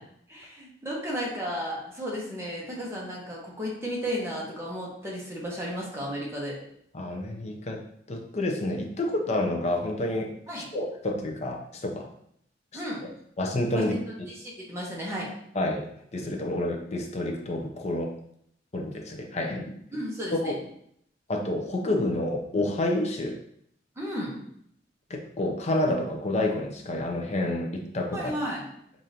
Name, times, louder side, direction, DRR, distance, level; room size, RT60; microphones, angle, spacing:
voice 1, 0.3-6.6 10.5-10.7 12.7-13.0 13.7-15.3 19.9-20.6 24.0-24.4 28.1-28.6, equal, 15° right, -4 dB, 1.0 m, -34 dB
voice 2, 6.9-7.8 8.1-10.3 10.7-12.1 12.7-12.8 13.4-13.9 15.5-18.1 18.7-19.7 20.4-20.6 21.3-23.4 25.1-28.3, left 1 dB, 35° left, 1 dB, 0.6 m, -29 dB
4.9 x 2.6 x 2.8 m, 0.71 s
head